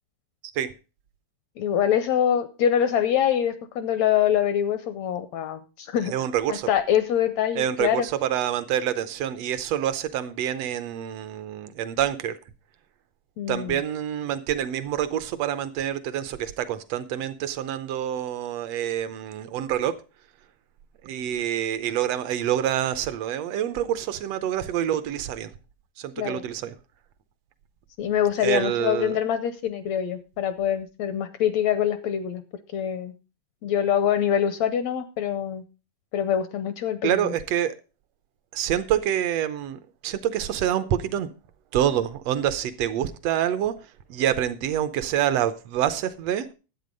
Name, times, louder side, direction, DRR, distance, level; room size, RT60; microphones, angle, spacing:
voice 1, 1.6-6.1 6.5-8.1 13.4-13.8 26.2-26.4 28.0-32.4 32.7-33.1 33.6-35.6 36.1-37.3, left 9 dB, 80° left, 1.6 m, -24 dB
voice 2, 6.1-6.7 7.5-12.4 13.5-20.0 21.0-25.5 26.0-26.7 28.4-29.2 37.0-37.7 38.5-41.3 41.7-43.8 44.1-46.5, right 10 dB, 80° right, 1.4 m, -27 dB
11.5 x 8.3 x 5.2 m
omnidirectional pair, 3.8 m